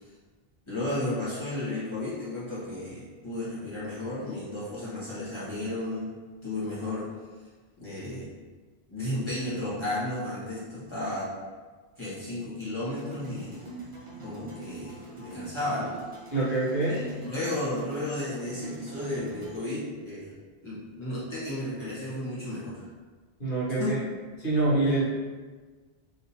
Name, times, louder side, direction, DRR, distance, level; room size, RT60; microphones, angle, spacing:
voice 1, 0.7-6.1 6.4-7.1 7.8-8.3 8.9-11.3 12.0-13.6 14.2-16.0 16.9-20.3 20.6-22.8 23.8-23.9, left 1 dB, 30° left, -11 dB, 1.2 m, -33 dB
sound 1, 12.9-19.6, right 2 dB, 35° right, 0.7 m, -43 dB
voice 2, 16.3-17.0 23.4-24.0 24.4-25.1, right 2 dB, 55° left, -9 dB, 1.5 m, -25 dB
3.5 x 2.8 x 2.8 m, 1.4 s
omnidirectional pair, 1.0 m